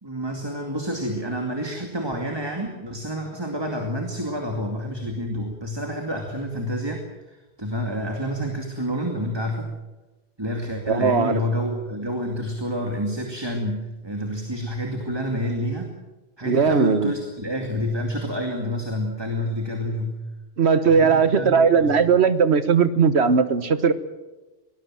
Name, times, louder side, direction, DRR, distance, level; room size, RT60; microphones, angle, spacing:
voice 1, 0.0-9.7 10.4-15.9 16.4-20.2 20.8-21.9, equal, 25° right, 3 dB, 2.4 m, -28 dB
voice 2, 10.9-11.4 16.4-17.1 20.6-23.9, right 5 dB, 90° right, 12 dB, 1.5 m, -18 dB
24.0 x 19.5 x 7.6 m, 1.1 s
omnidirectional pair, 1.1 m